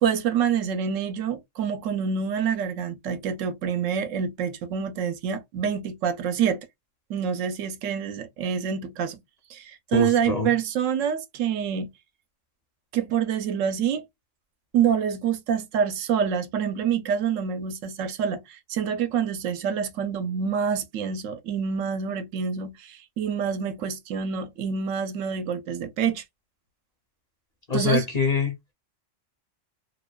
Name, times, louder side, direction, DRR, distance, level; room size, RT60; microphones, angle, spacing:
voice 1, 0.0-6.6 7.1-9.2 9.5-11.9 12.9-14.0 14.7-26.2 27.7-28.0, right 7 dB, 90° right, 1.0 m, -26 dB
voice 2, 9.9-10.5 27.7-28.5, left 5 dB, 45° left, 0.6 m, -24 dB
2.7 x 2.1 x 2.2 m
omnidirectional pair, 1.3 m